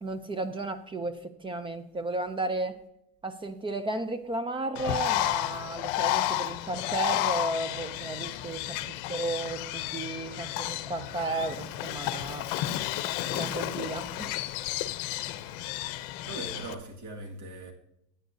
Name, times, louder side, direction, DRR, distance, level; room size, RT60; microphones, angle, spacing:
voice 1, 0.0-2.8 3.2-12.5 13.3-14.4, right 2 dB, 15° right, 0.4 m, -34 dB
Bird, 4.7-16.7, left 14 dB, 70° left, 0.7 m, -32 dB
voice 2, 16.2-17.7, right 2 dB, 55° right, 1.9 m, -40 dB
14.5 x 9.0 x 2.7 m
cardioid pair, 155°, 36 cm